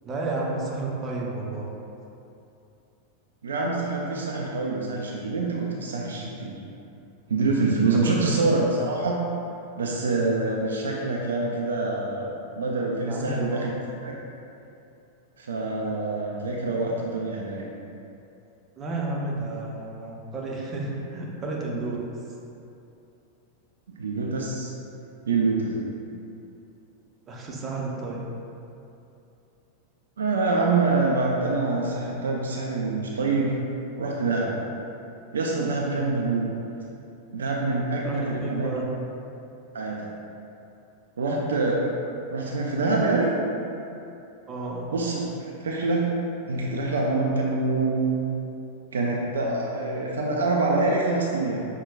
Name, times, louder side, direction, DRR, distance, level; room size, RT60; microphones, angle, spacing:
voice 1, 0.0-1.7 8.0-8.6 13.1-13.7 18.8-22.0 27.3-28.3 38.0-38.9 44.5-44.9, right 2 dB, 25° right, -3 dB, 0.6 m, -31 dB
voice 2, 3.4-6.6 7.3-9.2 9.8-13.7 14.0-14.1 15.4-17.6 23.9-24.7 25.2-25.9 30.2-33.6 34.0-34.6 35.3-36.5 37.3-38.7 39.7-40.1 41.2-42.0 42.3-43.3 44.9-46.1 46.5-48.2 48.9-51.7, right 3 dB, 65° right, -2 dB, 0.3 m, -25 dB
5.7 x 2.1 x 2.3 m, 2.7 s
figure-of-eight pair, 90°, 0 cm